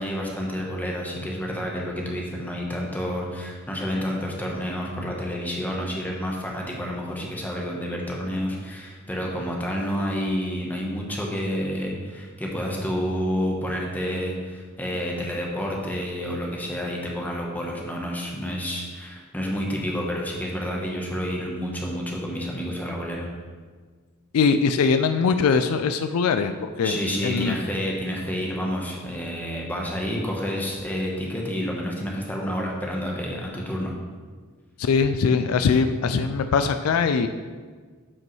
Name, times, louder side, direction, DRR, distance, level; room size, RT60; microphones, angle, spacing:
voice 1, 0.0-23.3 26.8-33.9, equal, 10° left, -2 dB, 1.0 m, -29 dB
voice 2, 24.3-27.6 34.8-37.3, left 5 dB, 85° left, 9 dB, 0.4 m, -22 dB
9.4 x 5.3 x 3.1 m, 1.5 s
head